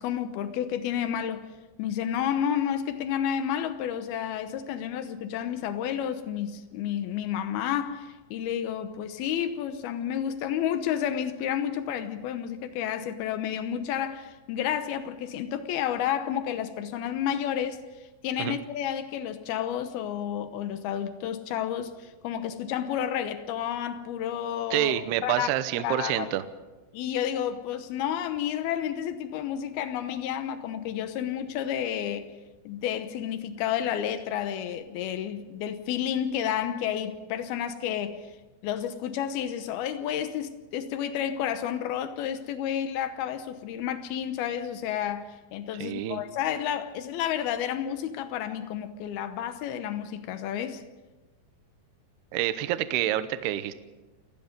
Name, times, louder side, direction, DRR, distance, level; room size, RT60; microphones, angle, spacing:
voice 1, 0.0-1.4 1.8-25.5 25.8-26.3 26.9-32.3 32.7-38.3 38.6-50.8, left 9 dB, 80° left, 2.2 m, -31 dB
voice 2, 24.7-26.4 45.8-46.2 52.3-53.7, right 13 dB, 80° right, 2.4 m, -27 dB
28.5 x 18.0 x 5.3 m
omnidirectional pair, 5.8 m